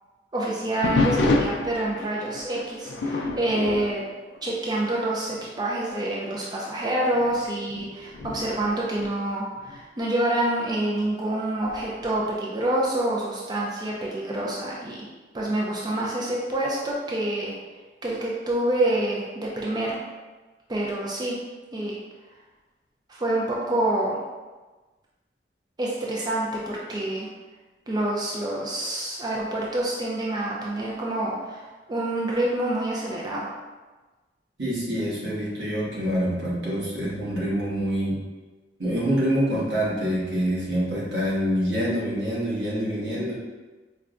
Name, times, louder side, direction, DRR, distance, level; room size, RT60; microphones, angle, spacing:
voice 1, 0.3-4.0 4.4-15.1 15.3-17.5 18.0-20.0 20.7-21.4 21.7-22.0 23.1-24.2 25.8-27.3 27.9-33.5, right 1 dB, 25° right, -4 dB, 0.4 m, -27 dB
sound 1, 0.8-5.0 5.3-5.6 6.3-6.4 7.1-9.8 11.6-12.2, left 2 dB, 80° left, 0.4 m, -29 dB
voice 2, 34.6-38.2 38.8-43.3, equal, 85° right, -6 dB, 1.1 m, -26 dB
4.5 x 2.2 x 2.5 m, 1.2 s
head